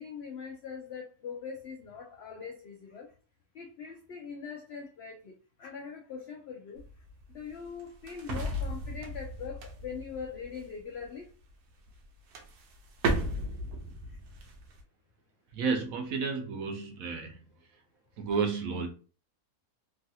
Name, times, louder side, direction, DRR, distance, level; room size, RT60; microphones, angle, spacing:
voice 1, 0.0-3.1 3.5-6.8 7.3-11.3 14.1-14.2, left 6 dB, 75° left, 0 dB, 0.5 m, -42 dB
sound 1, 6.8-11.1 11.9-12.0 12.3-14.8, right 1 dB, 90° right, 1.2 m, -35 dB
voice 2, 15.5-17.4 17.7-17.8 18.2-18.9, right 5 dB, 70° right, 4 dB, 1.0 m, -31 dB
3.1 x 2.4 x 2.7 m, 0.38 s
omnidirectional pair, 1.7 m